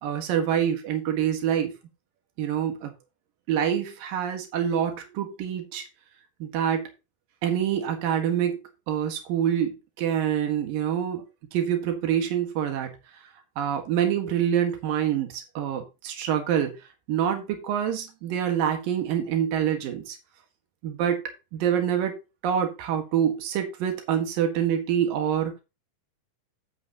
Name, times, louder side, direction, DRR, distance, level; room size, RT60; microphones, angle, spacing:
voice 1, 0.0-1.7 2.4-2.9 3.5-5.8 6.4-6.9 7.4-11.3 11.5-13.0 13.6-16.8 17.1-20.2 20.8-21.2 21.5-22.2 22.4-25.6, right 9 dB, 80° right, 5 dB, 3.3 m, -26 dB
12.0 x 8.0 x 2.9 m, 0.27 s
omnidirectional pair, 4.0 m